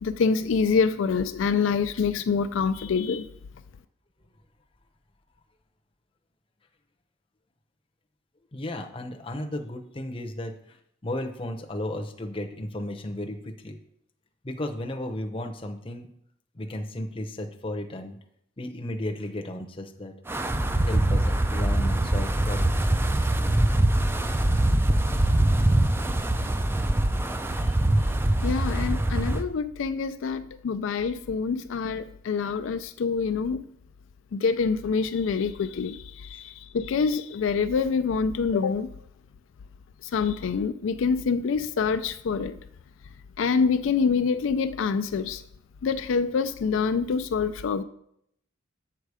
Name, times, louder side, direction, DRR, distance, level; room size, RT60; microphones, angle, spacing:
voice 1, 0.0-3.3 28.4-33.7 34.3-38.9 40.0-42.5 43.4-45.4 45.8-47.8, left 5 dB, 75° left, 0.4 m, -26 dB
voice 2, 8.5-10.8 11.0-13.8 14.4-16.1 16.5-18.1 18.6-20.1 20.9-22.9, left 1 dB, 25° left, 0.7 m, -34 dB
Wind, 20.3-29.4, right 1 dB, 10° right, 0.4 m, -23 dB
7.4 x 6.7 x 4.8 m
head